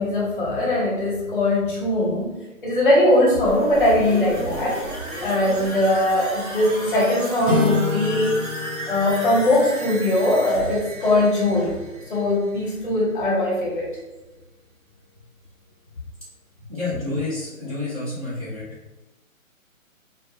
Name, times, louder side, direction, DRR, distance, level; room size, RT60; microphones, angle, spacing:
voice 1, 0.0-2.4 2.6-4.8 5.2-8.4 8.9-11.8 12.1-13.9 17.0-17.1, left 1 dB, 35° left, -4 dB, 0.7 m, -20 dB
sound 1, 3.3-13.1 13.4-13.5, right 1 dB, 55° right, 1.0 m, -34 dB
sound 2, 7.5-11.9, left 4 dB, 90° right, 0.9 m, -29 dB
voice 2, 16.7-18.7, left 2 dB, 25° right, -11 dB, 0.5 m, -29 dB
2.1 x 2.1 x 2.7 m, 1.1 s
hypercardioid pair, 150°, 42 cm